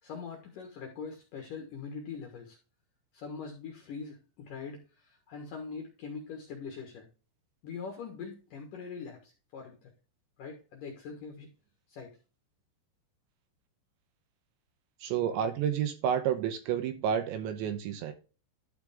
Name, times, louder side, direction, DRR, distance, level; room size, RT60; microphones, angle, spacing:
voice 1, 0.0-2.6 3.1-7.1 7.6-9.9 10.4-11.5 11.9-12.1, left 5 dB, 65° left, 2 dB, 2.2 m, -42 dB
voice 2, 15.0-18.1, right 9 dB, 75° right, 8 dB, 2.9 m, -30 dB
12.0 x 5.1 x 3.5 m, 0.34 s
omnidirectional pair, 5.8 m